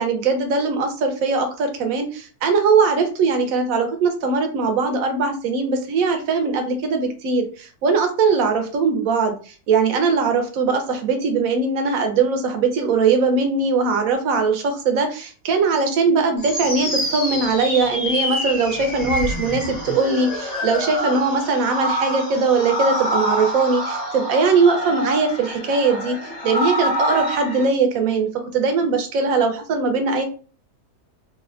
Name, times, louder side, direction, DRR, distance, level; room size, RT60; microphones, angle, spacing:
voice 1, 0.0-26.2 26.4-30.2, right 4 dB, 65° right, 5 dB, 1.0 m, -20 dB
sound 1, 16.4-27.6, equal, 30° left, 0.9 m, -26 dB
3.3 x 2.5 x 2.4 m, 0.38 s
omnidirectional pair, 1.7 m